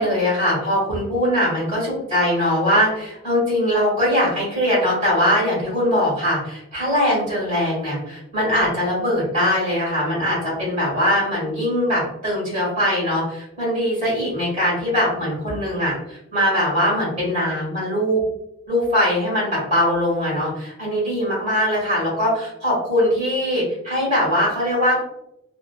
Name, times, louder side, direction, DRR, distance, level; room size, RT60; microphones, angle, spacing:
voice 1, 0.0-18.3 18.7-25.0, equal, 35° right, -6 dB, 1.5 m, -21 dB
2.7 x 2.3 x 2.2 m, 0.83 s
head